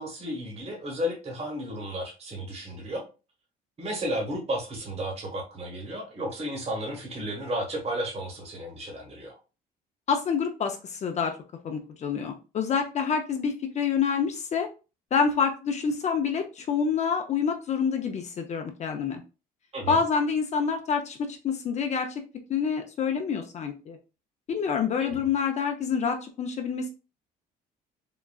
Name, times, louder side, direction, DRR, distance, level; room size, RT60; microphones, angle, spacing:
voice 1, 0.0-3.0 3.8-9.3 19.7-20.0 25.0-25.2, equal, 35° right, 0 dB, 1.3 m, -33 dB
voice 2, 10.1-11.3 11.6-14.7 15.1-19.2 19.9-22.2 22.5-24.0 24.5-26.9, left 6 dB, 40° left, 5 dB, 0.5 m, -27 dB
3.8 x 2.2 x 2.3 m, 0.32 s
cardioid pair, 110°, 17 cm